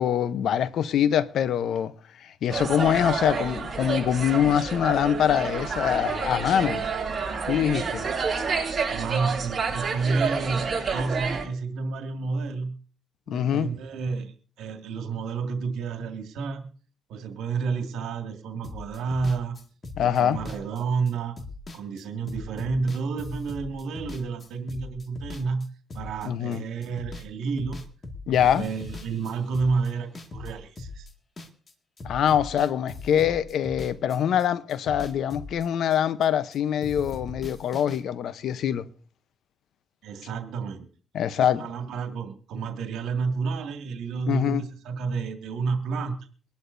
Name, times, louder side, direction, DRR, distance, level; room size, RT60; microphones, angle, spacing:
voice 1, 0.0-1.9 2.2-6.8 7.5-8.1 13.3-13.8 20.0-20.4 26.2-26.6 28.3-28.6 32.0-38.9 41.1-41.7 44.3-44.6, left 9 dB, 70° left, 0.8 m, -24 dB
sound 1, 2.5-11.4, right 5 dB, 35° right, 7.0 m, -29 dB
voice 2, 8.9-12.8 13.3-16.7 17.1-19.5 20.0-21.3 21.7-25.7 25.9-27.8 28.3-31.1 40.0-40.9 41.4-46.1, right 4 dB, 85° right, 2.0 m, -30 dB
sound 2, 18.6-26.6 26.8-27.3 27.6-31.7 32.0-34.4 34.7-36.6 36.8-38.0, left 2 dB, 35° left, 2.0 m, -40 dB
23.5 x 11.5 x 2.7 m
cardioid pair, 90°, 0 cm